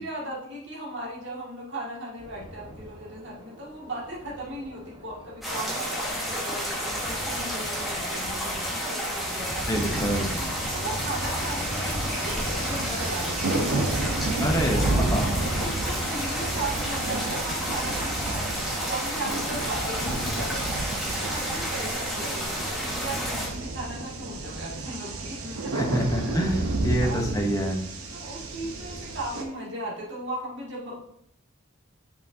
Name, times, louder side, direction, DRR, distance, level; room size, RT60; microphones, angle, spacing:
voice 1, 0.0-9.7 10.7-14.4 14.7-15.1 15.5-18.6 18.9-25.6 26.0-26.3 27.0-27.5 28.1-31.0, right 1 dB, 55° right, -5 dB, 2.1 m, -37 dB
sound 1, 2.2-19.8, equal, 20° right, 1.2 m, -41 dB
sound 2, 5.4-23.5, equal, ahead, 1.5 m, -31 dB
voice 2, 9.7-10.3 14.4-15.3 25.7-27.8, equal, 15° left, 1 dB, 0.8 m, -26 dB
sound 3, 9.7-29.4, right 2 dB, 90° right, 0.8 m, -31 dB
6.8 x 5.7 x 2.7 m, 0.71 s
head